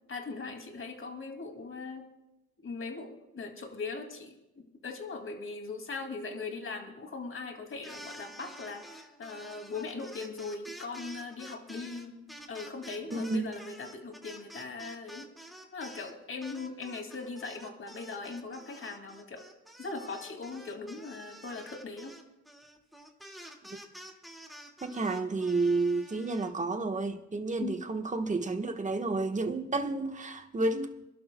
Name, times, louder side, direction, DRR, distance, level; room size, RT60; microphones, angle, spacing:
voice 1, 0.1-2.1 2.6-15.3 15.7-19.4 19.8-22.2 27.6-27.8, left 4 dB, 45° left, 2.5 m, -40 dB
sound 1, 7.7-16.1 16.4-26.5, equal, ahead, 2.1 m, -49 dB
voice 2, 13.1-13.5 24.8-30.9, right 3 dB, 25° right, 1.4 m, -31 dB
28.0 x 12.0 x 2.3 m
cardioid pair, 90°, 30 cm